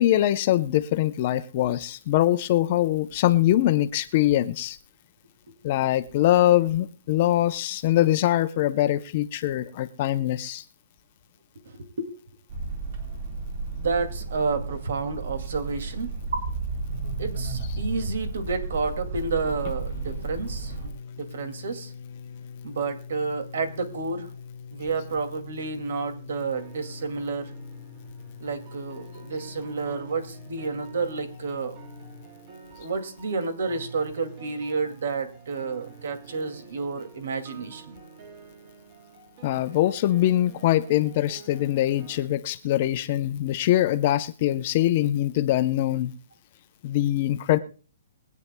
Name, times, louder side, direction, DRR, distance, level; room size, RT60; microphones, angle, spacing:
voice 1, 0.0-4.8 5.6-10.6 39.4-46.1 46.8-47.6, left 13 dB, 35° left, 10 dB, 0.6 m, -23 dB
voice 2, 11.6-12.1 13.7-16.1 17.2-20.8 21.2-21.9 22.6-24.3 24.7-27.5 28.4-31.8 32.8-38.0, right 4 dB, 65° right, 9 dB, 2.2 m, -30 dB
sound 1, 12.5-20.9, right 3 dB, 50° right, 4.1 m, -33 dB
sound 2, 19.4-32.3, left 6 dB, 55° left, 0.9 m, -43 dB
sound 3, 26.5-42.3, right 4 dB, 30° right, 2.1 m, -48 dB
23.0 x 9.4 x 2.2 m, 0.37 s
hypercardioid pair, 170°, 0 cm